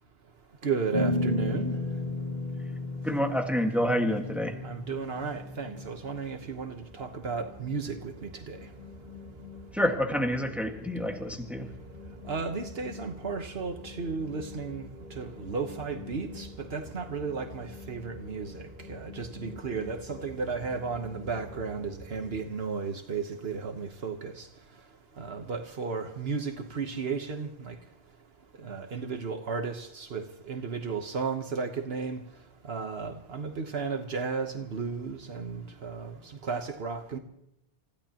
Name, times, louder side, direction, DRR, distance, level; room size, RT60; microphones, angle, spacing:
voice 1, 0.6-1.8 4.6-8.6 12.3-14.9 15.2-24.5 25.2-27.7 28.6-32.2 32.6-36.1 36.4-37.2, right 5 dB, 75° right, 6 dB, 1.3 m, -34 dB
sound 1, 0.9-5.9, left 2 dB, 50° left, 2.2 m, -33 dB
voice 2, 3.0-4.6 9.7-11.7, equal, ahead, 3 dB, 1.6 m, -28 dB
sound 2, 4.6-22.4, left 2 dB, 50° right, 5.0 m, -47 dB
30.0 x 15.5 x 2.9 m, 0.76 s
omnidirectional pair, 1.0 m